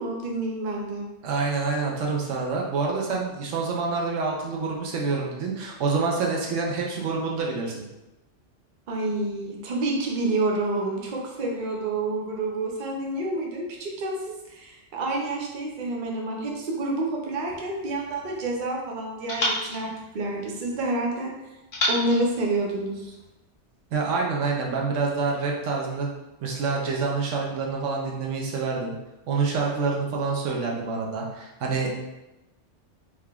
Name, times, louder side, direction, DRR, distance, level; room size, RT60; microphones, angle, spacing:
voice 1, 0.0-1.0 8.9-19.9 20.1-21.3 21.9-23.1, right 2 dB, 50° right, -1 dB, 0.7 m, -28 dB
voice 2, 1.2-7.9 23.9-26.1 26.4-29.0 29.3-31.9, right 4 dB, 85° right, -1 dB, 1.0 m, -27 dB
sound 1, 17.5-18.7 19.3-20.9 21.7-23.3, left 1 dB, 50° left, 0.9 m, -32 dB
3.5 x 3.5 x 2.3 m, 0.99 s
omnidirectional pair, 1.2 m